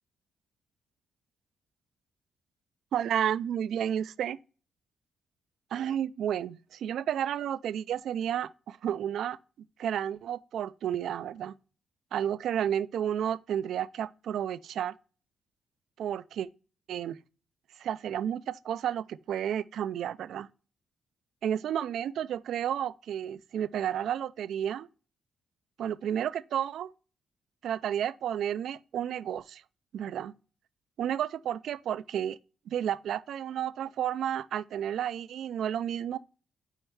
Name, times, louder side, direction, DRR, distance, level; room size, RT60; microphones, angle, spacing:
voice 1, 2.9-4.4 5.7-9.4 9.8-11.5 12.1-15.0 16.0-16.5 16.9-17.2 17.8-20.5 21.4-24.9 25.8-26.9 27.6-29.6 29.9-30.3 31.0-32.4 32.7-36.2, right 9 dB, 75° right, 0.3 m, -31 dB
5.4 x 4.6 x 4.5 m
cardioid pair, 75°, 0 cm